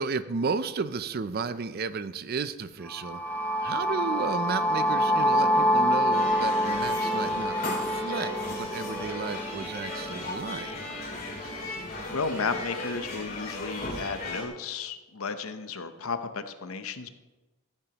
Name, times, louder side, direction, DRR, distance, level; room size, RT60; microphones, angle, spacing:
voice 1, 0.0-3.2 3.6-10.9, right 4 dB, 45° right, 14 dB, 0.4 m, -33 dB
sound 1, 2.8-10.8, equal, 5° left, 0.5 m, -27 dB
sound 2, 6.1-14.5, left 2 dB, 45° left, 2.3 m, -36 dB
voice 2, 12.1-17.1, left 5 dB, 80° left, 10 dB, 0.7 m, -33 dB
14.0 x 9.1 x 2.9 m, 1.1 s
head